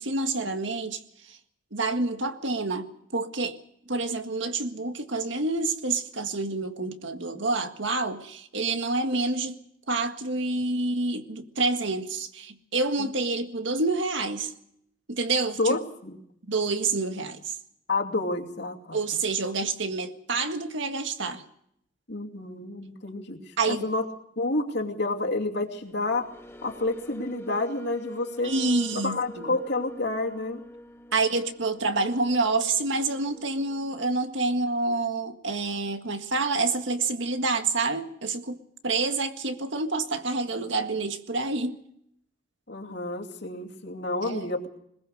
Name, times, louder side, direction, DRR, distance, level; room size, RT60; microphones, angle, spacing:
voice 1, 0.0-1.4 1.7-3.6 3.9-9.6 9.9-14.5 15.1-15.8 16.5-17.5 18.9-21.4 23.6-23.9 28.4-29.6 31.1-38.6 38.8-41.8 44.2-44.5, right 3 dB, 70° right, 1.8 m, -28 dB
voice 2, 15.6-16.2 17.9-19.0 22.1-24.1 24.4-26.3 26.6-28.5 29.0-30.6 42.7-44.7, left 2 dB, 60° left, 2.7 m, -29 dB
sound 1, 25.6-34.1, equal, 15° left, 1.3 m, -44 dB
21.0 x 21.0 x 6.5 m
head